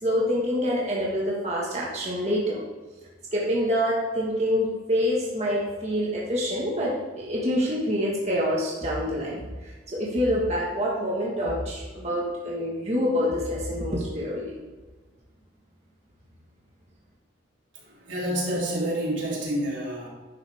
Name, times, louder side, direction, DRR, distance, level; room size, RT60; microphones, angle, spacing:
voice 1, 0.0-2.6 3.3-14.5, equal, 35° right, -5 dB, 1.6 m, -26 dB
voice 2, 17.7-20.1, right 1 dB, 80° right, -4 dB, 3.2 m, -28 dB
10.5 x 7.9 x 3.5 m, 1.3 s
head